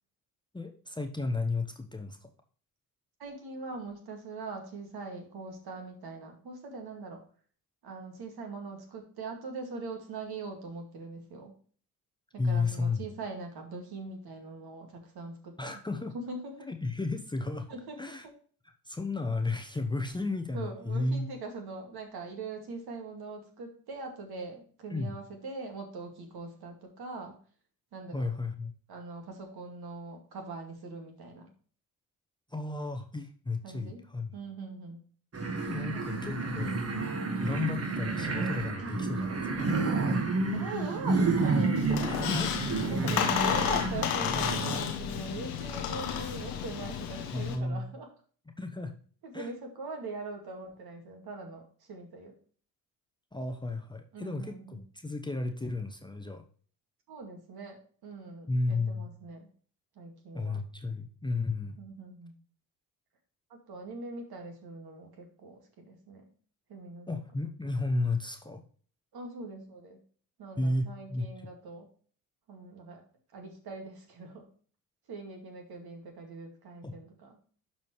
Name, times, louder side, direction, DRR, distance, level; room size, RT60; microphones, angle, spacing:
voice 1, 0.5-2.3 12.4-13.1 15.6-16.1 16.7-17.7 18.0-18.3 18.8-21.3 24.9-25.2 28.1-28.7 32.5-34.3 35.7-36.8 37.4-39.4 42.1-42.5 47.3-47.9 48.6-48.9 49.3-49.5 53.3-56.4 58.5-59.1 60.3-61.8 67.1-68.6 70.6-71.3 76.8-76.9, left 3 dB, 10° left, 4 dB, 0.9 m, -33 dB
voice 2, 3.2-7.3 7.8-11.6 12.4-15.7 16.1-16.7 17.7-18.3 20.5-27.4 27.9-28.3 28.9-31.5 33.6-34.0 34.3-35.0 35.9-36.3 38.8-39.2 40.5-42.5 42.9-48.1 49.2-52.3 54.1-54.8 57.1-59.5 60.0-60.6 61.8-62.3 63.5-66.3 66.7-67.2 69.1-70.0 70.4-71.9 72.5-73.0 73.3-74.5 75.1-77.4, right 3 dB, 55° right, 3 dB, 2.2 m, -42 dB
sound 1, 35.3-44.8, right 3 dB, 30° right, 1.7 m, -30 dB
Squeak, 41.8-47.6, left 9 dB, 85° left, 1.0 m, -32 dB
12.0 x 4.3 x 3.1 m, 0.44 s
hypercardioid pair, 45°, 44 cm